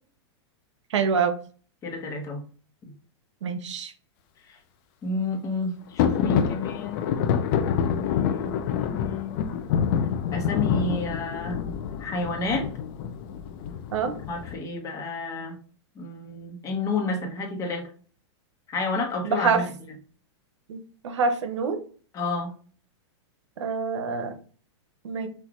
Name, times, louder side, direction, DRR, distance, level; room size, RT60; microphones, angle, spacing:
voice 1, 0.9-1.3 3.4-3.9 13.9-14.1 19.2-19.6 20.7-20.8 21.0-21.8 23.6-24.3 25.0-25.3, right 5 dB, 85° right, 9 dB, 0.9 m, -25 dB
voice 2, 1.8-2.4 2.8-2.9 4.5-4.6 5.0-7.1 7.9-8.5 8.9-9.5 10.3-11.7 12.0-12.7 14.3-15.6 15.9-17.9 18.7-19.7 22.1-22.5, left 3 dB, 20° left, 2 dB, 1.2 m, -30 dB
sound 1, 6.0-14.6, left 8 dB, 45° left, 0.6 m, -27 dB
6.2 x 2.7 x 3.0 m, 0.41 s
supercardioid pair, 145°, 15 cm